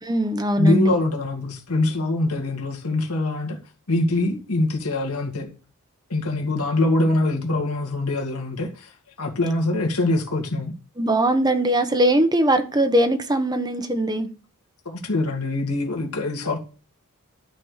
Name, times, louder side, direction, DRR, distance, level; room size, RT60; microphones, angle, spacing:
voice 1, 0.0-0.9 11.0-14.3, right 1 dB, 20° right, 1.1 m, -20 dB
voice 2, 0.6-3.6 3.9-5.5 6.1-8.9 9.2-10.7 14.9-16.6, left 2 dB, 70° left, 2.1 m, -23 dB
12.5 x 4.4 x 6.6 m
head